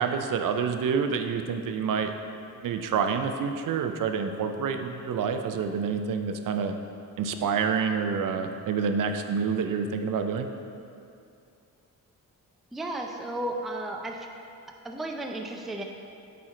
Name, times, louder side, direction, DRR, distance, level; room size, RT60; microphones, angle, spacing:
voice 1, 0.0-2.1 2.6-6.7 7.2-10.5, right 6 dB, 65° right, 6 dB, 0.5 m, -28 dB
voice 2, 12.7-14.3 14.8-15.8, right 1 dB, ahead, 2 dB, 0.4 m, -33 dB
9.1 x 4.4 x 3.8 m, 2.5 s
wide cardioid pair, 140°, 35 cm